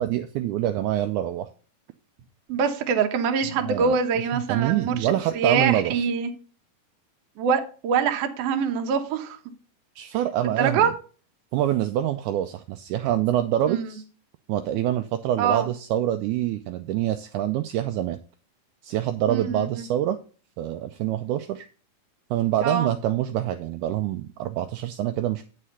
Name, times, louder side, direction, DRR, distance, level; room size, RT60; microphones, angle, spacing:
voice 1, 0.0-1.5 3.6-3.9 4.3-5.9 10.0-10.9 11.5-14.0 14.5-18.2 18.8-20.2 20.6-21.7 22.3-25.4, right 12 dB, 85° right, 8 dB, 1.7 m, -26 dB
voice 2, 2.5-6.3 7.4-9.4 10.4-10.9 13.7-14.0 15.4-15.7 19.3-19.9 22.6-22.9, right 6 dB, 70° right, 6 dB, 1.6 m, -24 dB
8.6 x 4.9 x 5.6 m, 0.38 s
omnidirectional pair, 4.0 m